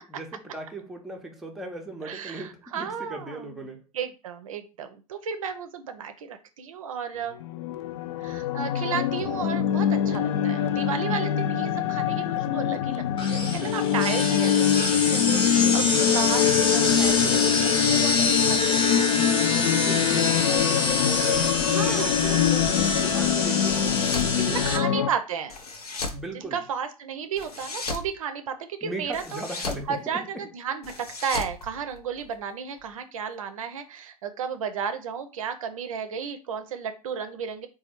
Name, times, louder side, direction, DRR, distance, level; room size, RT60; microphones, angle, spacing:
voice 1, 0.0-3.8 13.4-14.0 19.6-24.9 26.1-26.6 28.8-30.0, right 2 dB, ahead, 0.6 m, -37 dB
voice 2, 2.0-3.6 3.9-7.4 8.2-19.1 21.8-22.1 24.5-25.6 26.3-29.4 29.9-37.7, right 7 dB, 60° right, 0.5 m, -33 dB
sound 1, 7.4-25.1, left 9 dB, 50° left, 0.4 m, -24 dB
sound 2, 13.2-24.8, left 3 dB, 25° left, 0.8 m, -26 dB
sound 3, 23.6-24.4 25.5-26.2 27.4-28.1 29.1-29.9 30.8-32.4, left 3 dB, 75° left, 0.8 m, -35 dB
4.1 x 2.3 x 4.2 m
figure-of-eight pair, 90°, 20 cm